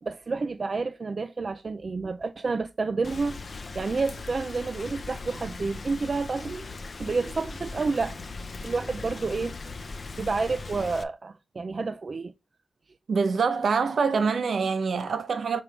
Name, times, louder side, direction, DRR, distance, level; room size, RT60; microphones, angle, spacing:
voice 1, 0.0-3.4 3.8-6.7 7.0-8.2 8.6-9.6 10.2-12.3, right 4 dB, 50° right, 0.4 m, -29 dB
Rain, 3.0-11.0, left 3 dB, 50° left, 0.5 m, -39 dB
voice 2, 13.1-15.6, right 5 dB, 80° right, 0.8 m, -25 dB
5.9 x 3.2 x 4.9 m
wide cardioid pair, 100°, 0 cm